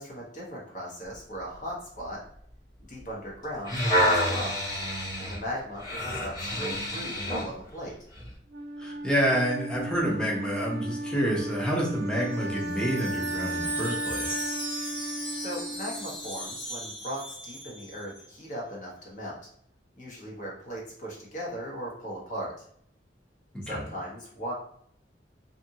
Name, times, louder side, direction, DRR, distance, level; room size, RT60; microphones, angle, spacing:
voice 1, 0.0-2.2 2.9-4.6 5.2-8.0 15.4-19.4 20.0-22.5 23.6-24.5, equal, 45° left, -3 dB, 0.9 m, -38 dB
sound 1, 3.4-7.5 8.2-8.3, equal, 25° left, 1.2 m, -28 dB
Wind instrument woodwind instrument, 8.5-16.5, right 1 dB, 80° right, 0.5 m, -35 dB
voice 2, 8.8-14.4 23.5-23.8, equal, 5° left, -3 dB, 0.6 m, -28 dB
Wind chime, 12.1-18.3, right 1 dB, 70° left, 1.4 m, -38 dB
2.6 x 2.6 x 2.7 m, 0.64 s
head